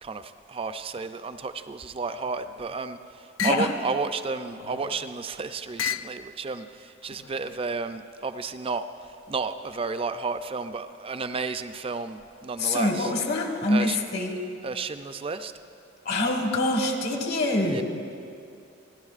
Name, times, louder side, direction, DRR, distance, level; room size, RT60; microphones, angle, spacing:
voice 1, 0.0-13.1 13.7-14.0 14.6-15.5 17.6-17.8, right 4 dB, 30° right, 10 dB, 0.4 m, -32 dB
sound 1, 2.3-2.8 3.4-3.7 4.5-5.1 5.8-6.2 7.0-7.6, left 9 dB, 80° left, 0.3 m, -34 dB
voice 2, 12.6-14.4 16.0-17.8, left 2 dB, 60° left, 2 dB, 1.5 m, -25 dB
29.5 x 11.5 x 2.5 m, 2.5 s
head